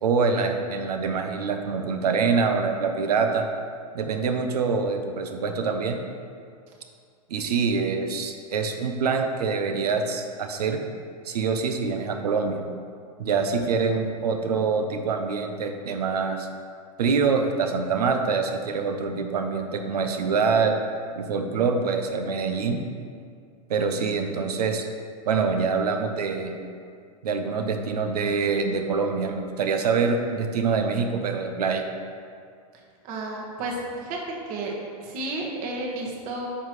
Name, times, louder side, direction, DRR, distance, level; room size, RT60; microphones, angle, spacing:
voice 1, 0.0-3.5 3.9-6.0 7.3-10.8 11.2-12.6 13.2-16.5 17.0-20.8 21.2-22.8 23.7-24.8 25.3-26.6 27.2-31.8, right 5 dB, 80° right, 5 dB, 0.8 m, -25 dB
voice 2, 33.0-34.2 34.5-34.7 35.0-36.5, right 2 dB, 45° right, -1 dB, 1.7 m, -32 dB
10.0 x 5.9 x 3.2 m, 2.3 s
hypercardioid pair, 110°, 20 cm